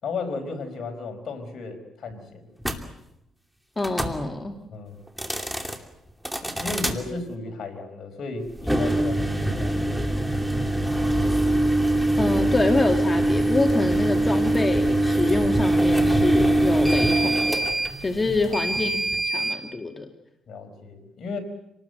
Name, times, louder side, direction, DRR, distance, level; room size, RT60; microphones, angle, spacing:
voice 1, 0.0-2.5 4.7-5.0 6.6-9.8 20.5-21.4, left 3 dB, 60° left, 6 dB, 5.0 m, -34 dB
sound 1, 2.6-2.8 3.8-4.2 5.1-5.8 6.2-7.0 8.6-19.6, right 1 dB, ahead, 2.7 m, -23 dB
voice 2, 3.8-4.6 12.2-17.6 18.0-20.1, left 3 dB, 20° left, 4 dB, 2.2 m, -26 dB
27.0 x 19.5 x 8.0 m, 0.86 s
cardioid pair, 90°, 0 cm